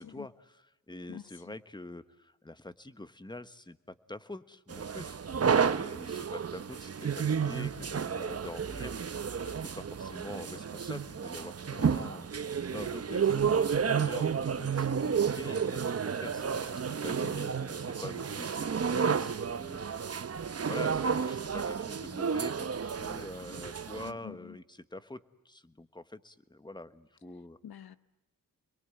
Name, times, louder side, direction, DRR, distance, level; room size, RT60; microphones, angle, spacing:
voice 1, 0.0-12.3 12.7-20.3 20.7-27.6, left 2 dB, 10° left, 1.4 m, -45 dB
sound 1, 4.7-24.1, right 6 dB, 40° right, 1.0 m, -31 dB
voice 2, 24.0-24.5 27.6-28.0, left 9 dB, 85° left, 1.3 m, -46 dB
29.0 x 22.5 x 9.1 m
cardioid pair, 85°, 36 cm